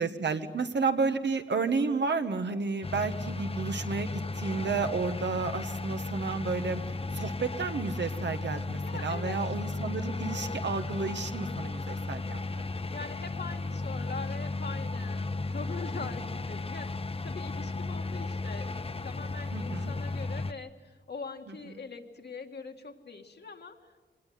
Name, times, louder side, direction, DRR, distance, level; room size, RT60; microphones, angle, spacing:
voice 1, 0.0-12.4 16.0-16.1 19.5-19.9 21.5-21.8, right 4 dB, 70° right, 7 dB, 1.5 m, -31 dB
sound 1, 2.8-20.5, left 3 dB, 30° left, 0.7 m, -35 dB
voice 2, 8.8-9.4 12.0-12.5 12.9-24.0, left 4 dB, 60° left, 4 dB, 2.0 m, -43 dB
25.0 x 19.5 x 9.4 m, 1.3 s
wide cardioid pair, 115°, 19 cm